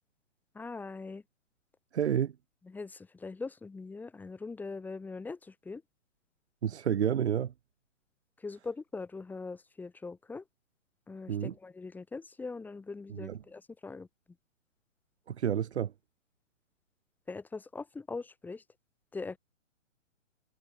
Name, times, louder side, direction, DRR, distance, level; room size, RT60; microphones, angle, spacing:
voice 1, 0.6-1.2 2.7-5.4 5.7-5.8 8.4-10.4 11.1-14.1 17.3-18.6 19.1-19.4, left 4 dB, 5° left, 2.2 m, -41 dB
voice 2, 1.9-2.3 6.6-7.5 11.3-11.5 13.1-13.4 15.3-15.9, right 9 dB, 55° right, 1.3 m, -30 dB
hypercardioid pair, 150°, 40 cm